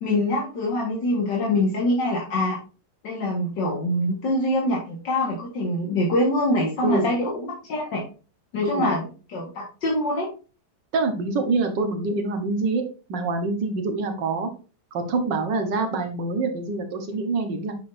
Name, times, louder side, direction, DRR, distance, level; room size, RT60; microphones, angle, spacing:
voice 1, 0.0-2.6 3.0-8.0 8.5-10.3, left 1 dB, 90° left, -3 dB, 2.3 m, -24 dB
voice 2, 6.8-7.2 8.6-8.9 10.9-12.8 13.1-14.5 14.9-17.8, right 3 dB, 85° right, 6 dB, 1.9 m, -25 dB
8.2 x 6.0 x 2.7 m, 0.35 s
omnidirectional pair, 1.9 m